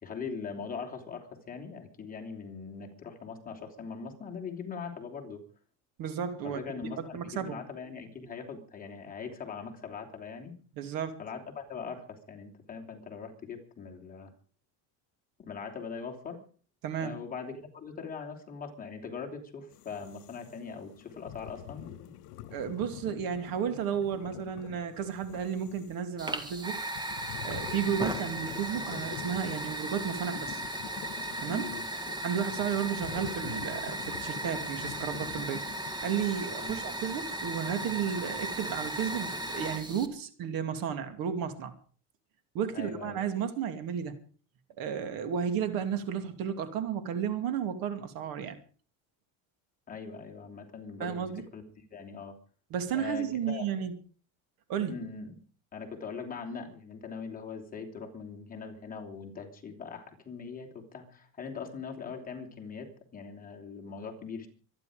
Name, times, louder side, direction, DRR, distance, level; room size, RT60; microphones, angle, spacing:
voice 1, 0.0-5.4 6.4-10.5 11.2-14.3 15.4-16.4 17.0-22.1 31.5-31.8 36.6-36.8 42.7-43.2 49.9-52.3 52.9-53.7 54.9-55.3 55.7-64.5, left 5 dB, 20° left, 2 dB, 3.2 m, -41 dB
voice 2, 6.0-6.6 7.0-7.6 10.8-11.2 16.8-17.2 22.5-26.8 27.4-30.6 31.4-31.6 32.2-41.7 42.5-44.2 44.8-48.6 51.0-51.4 52.7-53.9 54.7-55.0, right 8 dB, 60° right, 9 dB, 2.7 m, -33 dB
sound 1, 19.7-37.3, left 12 dB, 70° left, 1.4 m, -46 dB
Fire, 26.2-40.1, right 1 dB, 10° right, 1.8 m, -36 dB
25.0 x 10.5 x 5.1 m, 0.41 s
cardioid pair, 160°, 40 cm